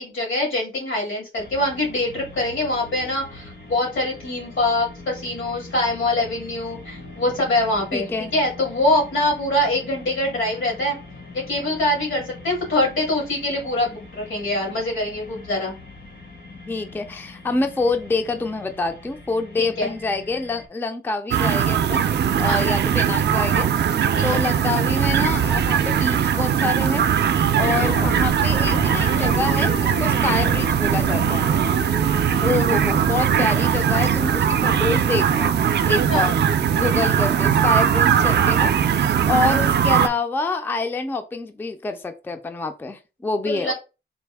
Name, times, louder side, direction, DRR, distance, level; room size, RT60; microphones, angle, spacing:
voice 1, 0.0-11.0 11.3-15.7 19.6-19.9 22.4-22.7 24.1-24.4 27.3-27.6 30.0-30.2 36.1-36.3 39.1-39.3 43.5-43.7, left 1 dB, 85° left, -1 dB, 2.3 m, -24 dB
sound 1, 1.3-20.7, left 2 dB, 65° left, 1.4 m, -42 dB
voice 2, 7.9-8.3 16.7-22.0 22.4-23.7 24.0-27.0 27.5-31.5 32.4-35.6 35.9-36.4 36.7-38.7 39.3-43.7, left 3 dB, 10° left, 7 dB, 0.3 m, -26 dB
sound 2, 21.3-40.1, right 8 dB, 60° right, 0.4 m, -20 dB
sound 3, 27.6-36.9, left 3 dB, 50° left, 0.8 m, -34 dB
4.1 x 2.6 x 3.4 m, 0.30 s
wide cardioid pair, 160°, 20 cm